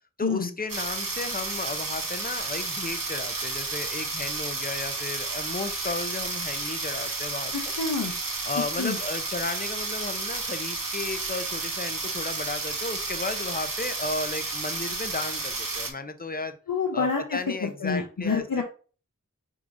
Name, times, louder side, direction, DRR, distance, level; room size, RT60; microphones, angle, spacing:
voice 1, 0.2-7.7 8.5-16.6 16.9-18.6, left 3 dB, 30° left, 9 dB, 0.6 m, -34 dB
sound 1, 0.7-15.9, right 3 dB, 90° right, 0.8 m, -32 dB
voice 2, 7.5-8.1 8.8-9.0 16.7-18.6, left 5 dB, 85° left, 2 dB, 0.7 m, -28 dB
4.7 x 3.7 x 2.6 m, 0.37 s
wide cardioid pair, 45°, 33 cm